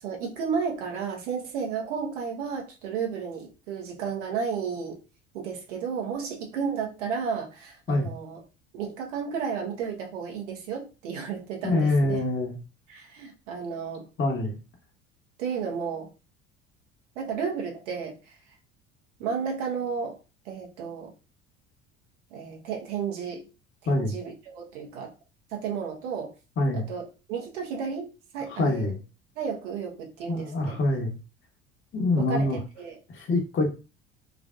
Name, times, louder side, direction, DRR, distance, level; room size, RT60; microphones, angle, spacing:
voice 1, 0.0-5.0 5.3-8.4 8.7-12.2 12.9-14.0 15.4-16.1 17.1-18.4 19.2-20.2 20.4-21.1 22.3-23.4 23.8-25.1 25.5-26.3 26.7-28.9 29.4-30.8 32.1-33.0, right 6 dB, 70° right, 1 dB, 1.3 m, -33 dB
voice 2, 11.6-12.6 14.2-14.6 23.9-24.1 26.6-26.9 28.5-29.0 30.3-31.1 31.9-32.6 33.1-33.7, left 2 dB, 30° left, 2 dB, 1.1 m, -25 dB
4.9 x 2.5 x 2.4 m, 0.31 s
hypercardioid pair, 65°, 38 cm